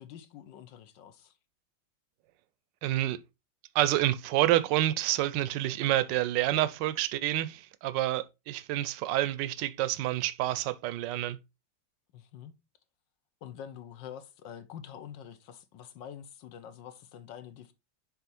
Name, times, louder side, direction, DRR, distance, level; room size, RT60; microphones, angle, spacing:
voice 1, 0.0-1.3 12.1-12.5 13.4-17.7, left 9 dB, 70° left, 1.5 m, -46 dB
voice 2, 2.8-3.2 3.7-11.4, right 14 dB, 75° right, 1.2 m, -28 dB
6.9 x 4.2 x 4.2 m
omnidirectional pair, 2.1 m